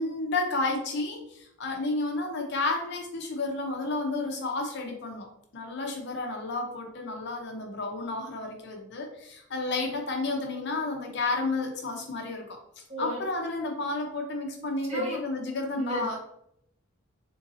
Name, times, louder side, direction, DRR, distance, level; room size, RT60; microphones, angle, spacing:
voice 1, 0.0-5.3 5.5-12.6 13.0-16.2, left 2 dB, 60° left, 2 dB, 0.7 m, -31 dB
voice 2, 15.8-16.2, right 1 dB, 35° right, -2 dB, 1.0 m, -32 dB
3.8 x 2.7 x 2.6 m, 0.74 s
head